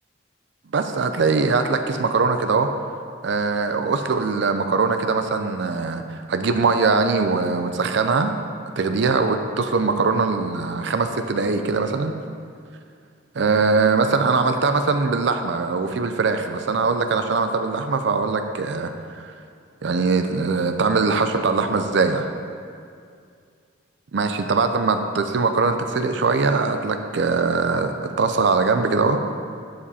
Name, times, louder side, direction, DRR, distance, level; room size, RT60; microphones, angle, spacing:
voice 1, 0.7-2.7 3.2-8.3 8.8-12.2 13.3-19.3 19.8-22.3 24.1-29.2, right 4 dB, 60° right, 7 dB, 0.4 m, -21 dB
12.5 x 5.2 x 4.2 m, 2.3 s
head